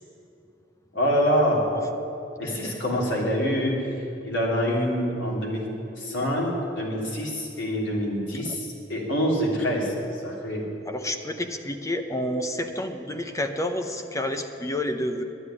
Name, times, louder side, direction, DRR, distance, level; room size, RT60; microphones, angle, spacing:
voice 1, 0.9-1.6 2.4-3.7 4.2-5.7 6.0-9.9 10.2-10.6, equal, 90° left, -3 dB, 3.3 m, -25 dB
voice 2, 2.4-2.8 10.9-15.2, left 1 dB, 15° left, 6 dB, 0.7 m, -29 dB
11.0 x 9.7 x 9.7 m, 2.9 s
head